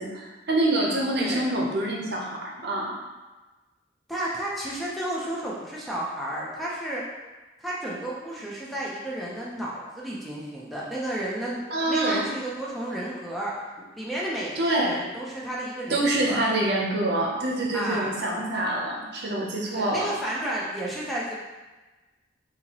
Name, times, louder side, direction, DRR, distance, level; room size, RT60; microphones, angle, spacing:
voice 1, 0.0-2.9 11.7-12.3 14.6-14.9 15.9-20.1, right 1 dB, 60° right, -2 dB, 0.7 m, -26 dB
voice 2, 4.1-7.0 7.6-13.5 13.9-16.4 17.7-18.1 19.7-21.3, right 1 dB, ahead, -6 dB, 0.5 m, -32 dB
4.2 x 2.8 x 2.9 m, 1.2 s
head